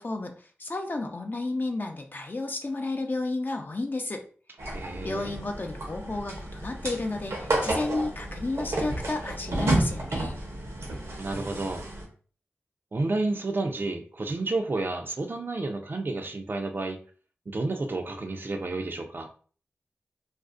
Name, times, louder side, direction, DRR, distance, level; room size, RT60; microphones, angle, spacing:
voice 1, 0.0-4.2 4.7-10.3, left 2 dB, 45° left, 3 dB, 0.5 m, -32 dB
sound 1, 4.6-12.1, right 1 dB, 80° right, 0.8 m, -31 dB
voice 2, 4.7-5.3 11.2-11.8 12.9-17.0 17.5-19.3, right 2 dB, 50° right, 5 dB, 0.4 m, -31 dB
2.5 x 2.0 x 2.4 m, 0.41 s
cardioid pair, 50°, 4 cm